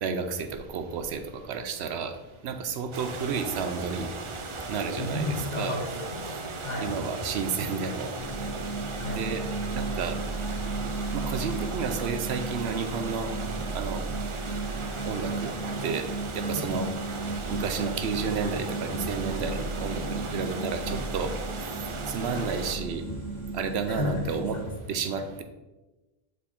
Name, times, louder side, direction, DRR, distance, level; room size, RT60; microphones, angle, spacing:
voice 1, 0.0-2.2 2.4-4.1 4.7-5.3 5.5-5.8 6.8-8.1 9.1-9.4 9.7-10.2 11.1-13.3 13.7-14.0 15.0-15.5 15.8-16.1 16.3-16.9 17.5-21.3 22.1-23.0 23.5-24.6 24.9-25.4, right 5 dB, 90° right, 7 dB, 0.9 m, -31 dB
sound 1, 2.9-22.7, right 4 dB, 45° right, 0.4 m, -38 dB
sound 2, 3.0-21.3, left 5 dB, 65° left, 0.7 m, -47 dB
voice 2, 5.0-6.2 6.6-6.9 9.0-9.2 16.5-16.6 22.3-22.5 23.9-24.6, left 2 dB, 45° left, 0 dB, 1.2 m, -32 dB
sound 3, 8.2-24.7, right 3 dB, 25° left, 1.2 m, -34 dB
6.5 x 4.2 x 3.6 m, 1.1 s
omnidirectional pair, 1.1 m